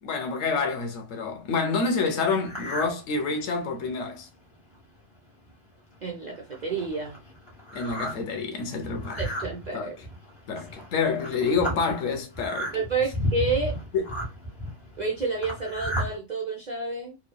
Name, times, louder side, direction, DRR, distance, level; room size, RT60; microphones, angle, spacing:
voice 1, 0.0-4.3 7.7-9.2 9.7-9.9 10.5-12.7 13.9-14.1, left 4 dB, 80° left, 1.1 m, -28 dB
sound 1, 2.4-3.0 3.4-3.5 4.1-4.2 4.5-4.8 5.5-5.6 5.9-16.2, equal, 25° left, 1.1 m, -34 dB
voice 2, 6.0-7.2 9.2-9.9 12.7-13.7 15.0-17.2, right 3 dB, 55° right, 0.5 m, -29 dB
3.0 x 2.1 x 2.2 m
omnidirectional pair, 1.3 m